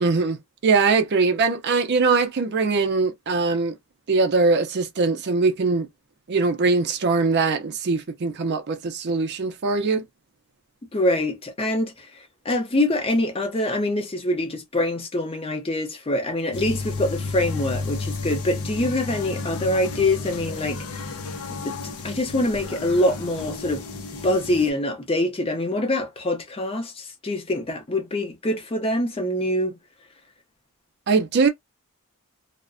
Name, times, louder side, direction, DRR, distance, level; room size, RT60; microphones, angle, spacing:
voice 1, 0.0-3.7 4.1-5.9 6.3-10.0 31.1-31.5, right 4 dB, 50° right, 0.4 m, -21 dB
voice 2, 10.9-21.0 21.5-21.8 22.0-23.8 24.2-29.7, left 1 dB, 25° left, 0.5 m, -25 dB
sound 1, 16.5-24.7, left 3 dB, 75° left, 0.5 m, -32 dB
2.4 x 2.0 x 2.4 m
head